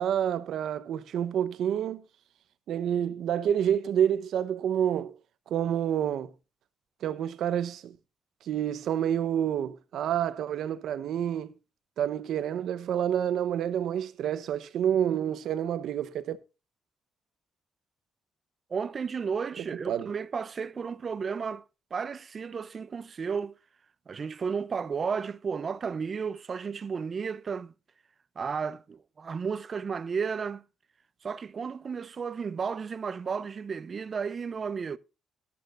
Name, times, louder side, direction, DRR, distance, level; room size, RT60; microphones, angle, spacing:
voice 1, 0.0-2.0 2.7-5.1 5.5-6.3 7.0-7.9 8.5-11.5 12.0-16.4 19.6-20.1, right 9 dB, 75° right, 0.9 m, -28 dB
voice 2, 18.7-21.6 21.9-23.5 24.1-27.7 28.4-30.6 31.2-35.0, right 6 dB, 40° right, 0.6 m, -33 dB
14.5 x 11.0 x 2.5 m
cardioid pair, 90°, 0 cm